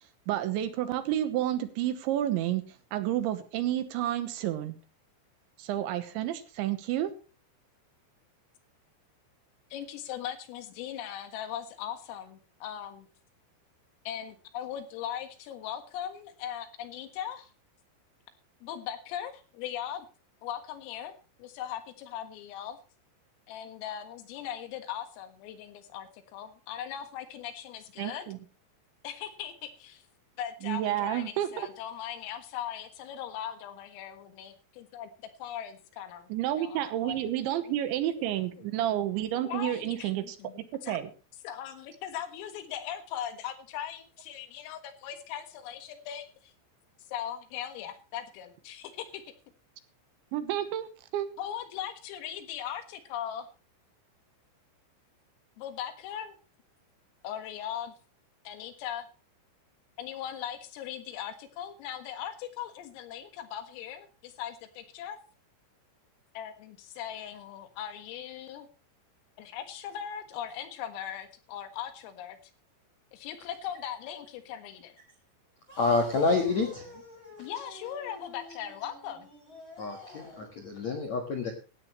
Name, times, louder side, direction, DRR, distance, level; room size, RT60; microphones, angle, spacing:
voice 1, 0.3-2.6 2.9-4.7 5.6-7.1 28.0-28.4 30.6-31.7 36.3-40.4 40.9-41.1 50.3-51.3, right 12 dB, 75° right, 10 dB, 3.2 m, -30 dB
voice 2, 9.7-13.1 14.1-17.5 18.6-20.1 20.4-22.8 23.5-28.3 29.0-30.0 30.4-35.1 35.4-38.9 39.2-41.0 41.4-46.5 47.1-49.2 51.4-53.5 55.6-56.4 57.2-57.9 58.5-59.1 60.0-65.2 66.4-68.7 69.4-72.4 73.1-75.0 77.4-79.3 81.2-81.5, left 10 dB, 85° left, 8 dB, 4.2 m, -39 dB
sound 1, 75.7-80.6, left 2 dB, 15° left, 3.3 m, -49 dB
voice 3, 75.8-76.8 79.8-81.5, left 3 dB, 65° left, 3 dB, 1.7 m, -28 dB
17.5 x 13.0 x 3.1 m, 0.34 s
omnidirectional pair, 5.8 m